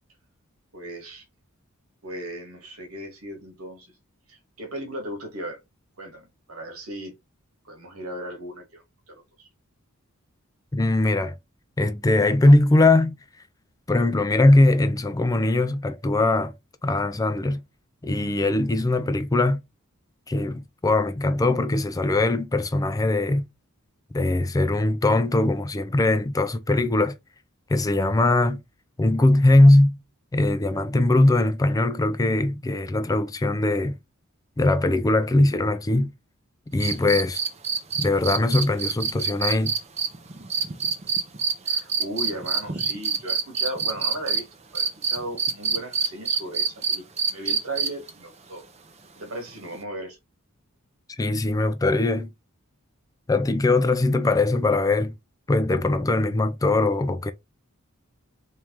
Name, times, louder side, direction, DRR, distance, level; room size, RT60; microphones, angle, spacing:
voice 1, 0.7-1.2 2.0-3.9 4.3-5.6 6.0-7.1 7.6-9.5 41.6-44.5 44.7-47.0 47.3-48.6 49.1-50.2, right 1 dB, 90° right, 1.7 m, -36 dB
voice 2, 10.7-11.3 11.8-13.1 13.9-16.5 16.8-17.6 18.0-19.6 20.3-23.5 24.1-27.2 27.7-28.6 29.0-30.0 30.3-34.0 34.6-36.1 36.7-37.4 38.0-39.7 51.2-52.3 53.3-55.1 55.5-57.3, left 2 dB, 15° left, 0.4 m, -21 dB
sound 1, 36.8-44.4 44.8-48.1 49.7-49.8, right 5 dB, 30° right, 0.6 m, -25 dB
3.5 x 3.2 x 2.9 m
head